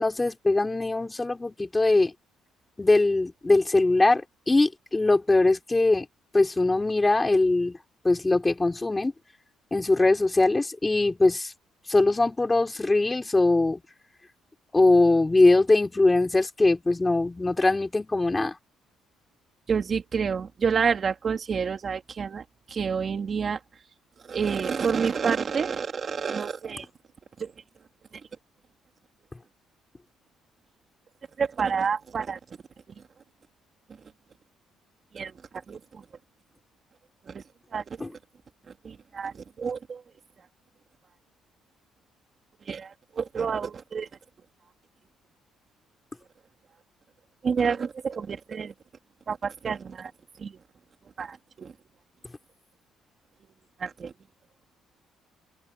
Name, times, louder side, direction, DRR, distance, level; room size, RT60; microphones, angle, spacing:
voice 1, 0.0-2.1 2.8-6.1 6.3-7.8 8.0-9.1 9.7-11.5 11.9-13.8 14.7-18.6 38.0-38.1, left 2 dB, 15° left, 4.7 m, -22 dB
voice 2, 19.7-23.6 24.3-26.9 27.4-27.5 31.4-32.4 35.1-36.0 37.3-37.4 37.7-37.8 38.8-40.0 42.7-44.1 47.4-48.7 49.3-50.1 50.4-50.6 51.2-51.7 53.8-54.1, right 6 dB, 35° right, 3.0 m, -29 dB
open air
cardioid pair, 125°, 0 cm